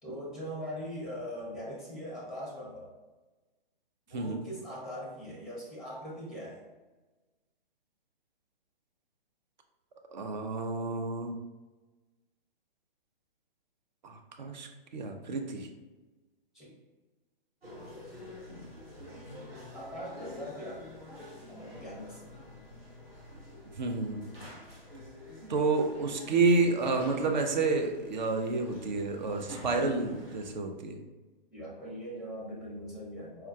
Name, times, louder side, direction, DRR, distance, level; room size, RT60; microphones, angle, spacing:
voice 1, 0.0-2.9 4.1-6.6 16.5-16.7 19.7-21.0 21.5-22.5 31.5-33.5, equal, ahead, -5 dB, 0.6 m, -41 dB
voice 2, 10.1-11.3 14.0-15.7 18.5-18.6 23.8-24.2 25.5-31.0, right 3 dB, 50° right, 4 dB, 0.5 m, -30 dB
sound 1, 17.6-30.5, left 1 dB, 85° right, 1.0 m, -48 dB
4.5 x 2.2 x 2.2 m, 1.2 s
figure-of-eight pair, 120°, 29 cm